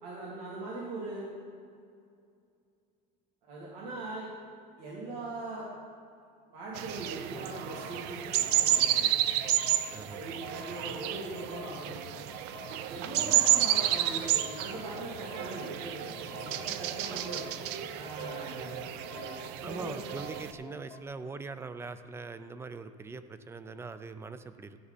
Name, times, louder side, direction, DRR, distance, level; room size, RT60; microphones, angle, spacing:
voice 1, 0.0-1.3 3.4-4.3 4.8-5.7 6.5-9.2 10.1-12.0 12.9-17.5 17.9-19.9, right 2 dB, 80° right, -6 dB, 2.9 m, -41 dB
sound 1, 6.7-20.5, right 12 dB, 60° right, 0.6 m, -31 dB
sound 2, 7.3-21.0, left 7 dB, 20° left, 0.8 m, -49 dB
voice 2, 9.9-10.2 13.2-13.4 19.6-24.8, right 4 dB, 15° right, 11 dB, 0.4 m, -42 dB
14.0 x 9.1 x 4.1 m, 2.3 s
cardioid pair, 155°, 20 cm